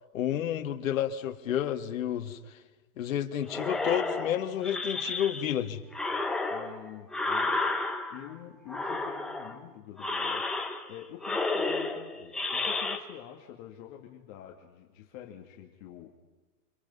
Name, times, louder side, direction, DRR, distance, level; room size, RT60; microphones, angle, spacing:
voice 1, 0.1-2.6 3.0-5.8, left 10 dB, 50° left, 6 dB, 2.1 m, -30 dB
sound 1, 3.5-5.6 5.9-8.3 8.7-9.6 10.0-11.0 11.2-13.0, left 3 dB, ahead, 0.8 m, -32 dB
voice 2, 6.5-16.1, left 11 dB, 30° left, 1 dB, 2.1 m, -47 dB
29.0 x 27.0 x 5.5 m, 1.2 s
hypercardioid pair, 160°, 49 cm